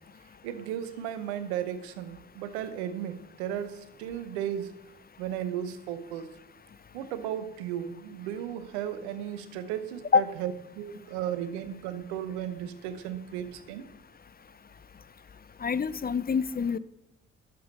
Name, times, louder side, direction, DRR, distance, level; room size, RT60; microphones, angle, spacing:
voice 1, 0.4-4.8 5.2-6.3 6.9-13.9, right 10 dB, 85° right, 12 dB, 0.8 m, -35 dB
voice 2, 15.6-16.8, left 6 dB, 30° left, 17 dB, 0.6 m, -25 dB
11.0 x 7.0 x 5.4 m, 0.90 s
hypercardioid pair, 45°, 32 cm